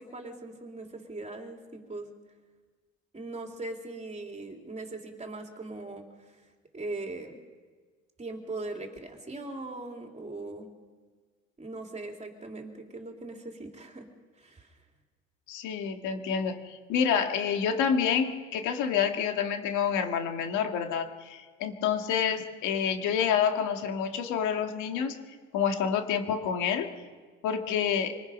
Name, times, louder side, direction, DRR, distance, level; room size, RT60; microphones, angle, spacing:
voice 1, 0.0-2.1 3.1-6.1 6.7-7.4 8.2-10.7 11.6-14.1 14.4-14.8, right 2 dB, 20° right, 2 dB, 3.4 m, -40 dB
voice 2, 15.5-25.1 25.5-26.9 27.4-28.2, left 7 dB, 75° left, 5 dB, 2.1 m, -28 dB
26.0 x 19.5 x 5.5 m, 1.5 s
supercardioid pair, 90°, 30 cm